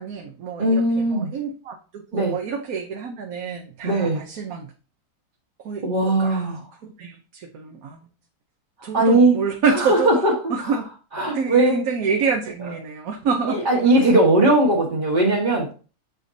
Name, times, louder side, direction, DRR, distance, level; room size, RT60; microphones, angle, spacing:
voice 1, 0.0-4.7 5.6-8.0 8.8-10.1 10.5-10.9 11.3-13.6 13.9-14.1, right 5 dB, 70° right, 2 dB, 1.3 m, -27 dB
voice 2, 0.6-1.3 2.1-2.4 3.8-4.2 5.8-6.6 8.9-9.4 9.8-10.3 11.1-11.8 13.5-15.7, right 2 dB, 35° right, -5 dB, 1.5 m, -19 dB
6.8 x 6.2 x 2.7 m, 0.36 s
omnidirectional pair, 1.6 m